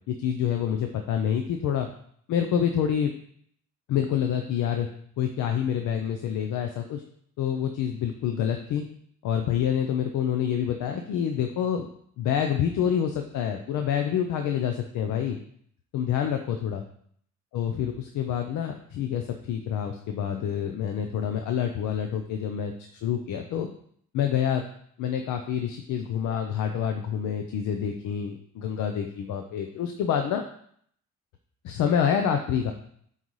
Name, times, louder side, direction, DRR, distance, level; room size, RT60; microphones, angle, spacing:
voice 1, 0.1-1.9 2.3-3.1 3.9-4.9 5.2-7.0 7.4-8.9 9.2-11.9 12.2-15.4 15.9-16.8 17.5-22.7 23.0-23.7 24.1-24.6 25.0-30.4 31.6-32.7, left 8 dB, 85° left, 5 dB, 0.6 m, -27 dB
9.1 x 4.0 x 3.1 m, 0.65 s
cardioid pair, 90°, 30 cm